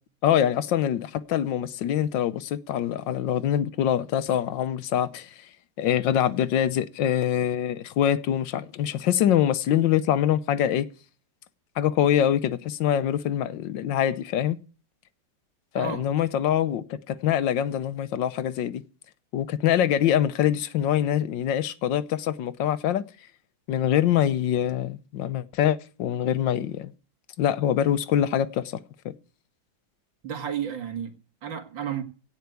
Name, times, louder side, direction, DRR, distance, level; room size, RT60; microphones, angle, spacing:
voice 1, 0.2-5.3 5.8-10.9 11.8-14.6 15.7-18.8 19.3-23.0 23.7-26.9 27.4-28.8 29.0-29.1, left 10 dB, 80° left, 1.5 m, -24 dB
voice 2, 30.2-32.0, right 8 dB, 85° right, 2.8 m, -32 dB
17.0 x 5.8 x 8.2 m
omnidirectional pair, 2.0 m